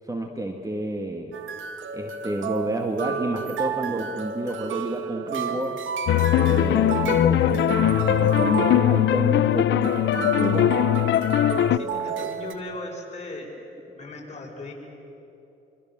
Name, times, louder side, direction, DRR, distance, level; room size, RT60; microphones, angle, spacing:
voice 1, 0.1-1.3 1.9-5.8 6.5-10.7, right 1 dB, 15° right, 3 dB, 1.9 m, -30 dB
sound 1, 1.3-12.5, right 7 dB, 75° right, 1.8 m, -31 dB
sound 2, 6.1-11.8, left 12 dB, 65° left, 0.6 m, -20 dB
voice 2, 11.7-13.6 13.9-14.7, left 2 dB, 35° left, -2 dB, 7.1 m, -37 dB
25.5 x 25.0 x 7.5 m, 3.0 s
cardioid pair, 90°, 20 cm